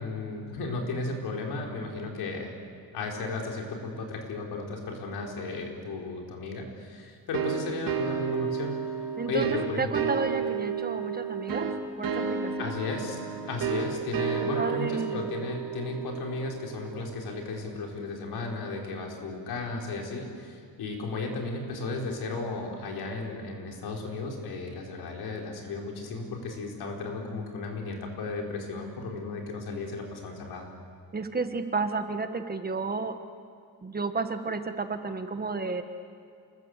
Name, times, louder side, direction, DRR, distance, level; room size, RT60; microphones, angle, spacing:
voice 1, 0.0-2.5 2.9-8.8 9.3-10.1 12.6-13.2 13.5-30.7, left 3 dB, 85° left, 1 dB, 4.9 m, -34 dB
sound 1, 7.3-17.8, right 7 dB, 60° right, 2.5 m, -32 dB
voice 2, 9.2-11.7 12.0-12.8 14.4-15.3 31.1-33.2 33.8-35.8, right 4 dB, 25° right, 8 dB, 1.5 m, -32 dB
28.0 x 21.0 x 8.2 m, 2.3 s
cardioid pair, 135°, 37 cm